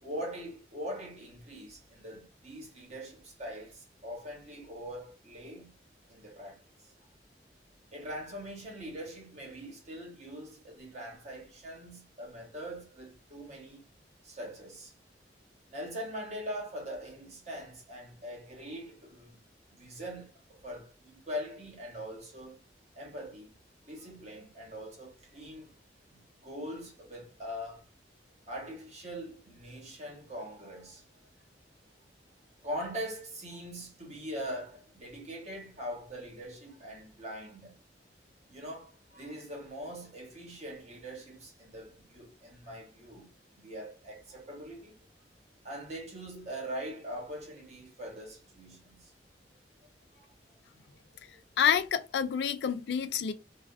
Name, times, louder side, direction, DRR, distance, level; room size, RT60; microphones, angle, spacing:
voice 1, 0.0-5.7 6.1-6.6 7.9-13.8 14.2-14.9 15.7-19.4 19.7-22.6 22.9-23.5 23.8-25.7 26.1-27.9 28.5-31.0 32.6-37.7 38.5-44.9 45.6-49.1 50.2-50.3 50.9-51.0 51.2-51.3, equal, 40° right, 1.0 m, -42 dB
voice 2, 51.6-53.3, left 8 dB, 70° left, 0.3 m, -28 dB
2.4 x 2.3 x 2.3 m
head